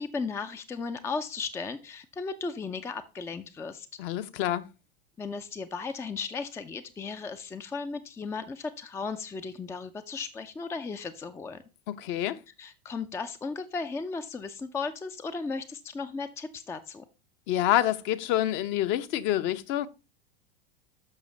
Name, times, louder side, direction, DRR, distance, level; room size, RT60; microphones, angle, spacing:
voice 1, 0.0-3.9 5.2-11.6 12.6-17.0, left 4 dB, 10° left, 0.4 m, -36 dB
voice 2, 4.0-4.7 11.9-12.4 17.5-19.9, left 13 dB, 40° left, 0.8 m, -27 dB
10.5 x 6.2 x 3.3 m
figure-of-eight pair, 90°, 31 cm